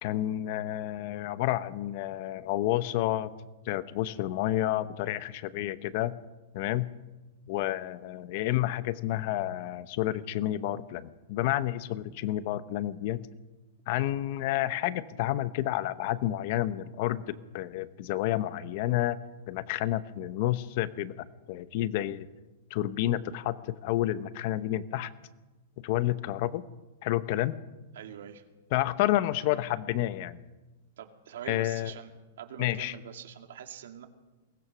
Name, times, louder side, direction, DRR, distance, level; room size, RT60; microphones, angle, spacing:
voice 1, 0.0-3.3 3.7-6.1 6.5-6.9 7.5-13.2 13.9-19.2 19.5-22.3 22.7-25.1 25.8-26.6 27.0-27.5 28.7-30.4 31.5-31.9 32.6-32.9, left 14 dB, 35° left, 14 dB, 0.9 m, -30 dB
voice 2, 27.9-28.4 31.0-32.1 32.4-34.1, right 9 dB, 65° right, 6 dB, 2.4 m, -44 dB
22.5 x 19.0 x 6.2 m, 1.2 s
supercardioid pair, 175°, 0 cm